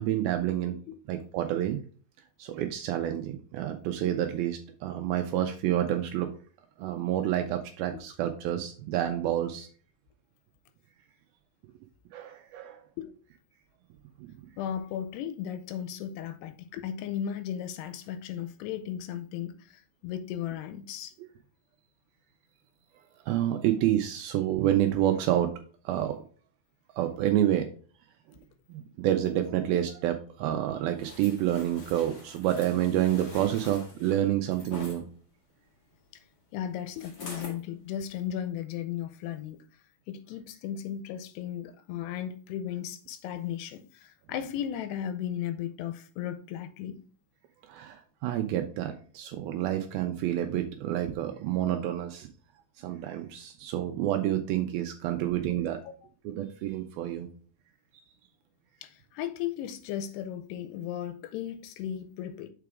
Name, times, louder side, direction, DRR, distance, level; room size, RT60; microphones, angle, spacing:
voice 1, 0.0-0.8 1.1-1.8 2.4-6.3 6.8-9.7 12.1-12.8 14.2-14.3 21.2-21.3 23.2-25.5 25.9-26.2 27.0-27.7 28.7-35.0 47.6-52.3 52.8-55.8 56.2-57.3 57.9-58.0, right 12 dB, 85° right, 2.2 m, -28 dB
voice 2, 14.6-21.1 36.5-39.6 40.1-47.0 58.8-62.5, left 10 dB, 90° left, 2.7 m, -36 dB
sound 1, 31.0-35.0 37.0-37.6 38.1-38.2, left 3 dB, 50° left, 1.2 m, -45 dB
6.8 x 4.8 x 3.5 m
omnidirectional pair, 4.8 m